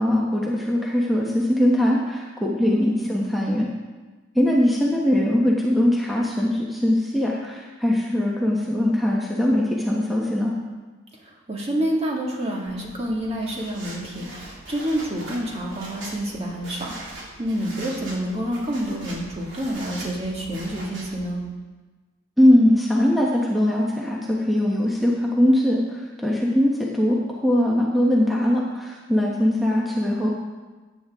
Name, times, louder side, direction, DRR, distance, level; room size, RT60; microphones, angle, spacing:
voice 1, 0.0-3.7 4.3-10.5 22.4-30.3, left 1 dB, ahead, -4 dB, 1.1 m, -21 dB
voice 2, 11.2-21.4, right 1 dB, 35° right, -2 dB, 2.1 m, -28 dB
sound 1, 12.7-21.3, right 1 dB, 80° right, 3.4 m, -41 dB
15.0 x 9.1 x 3.6 m, 1.3 s
head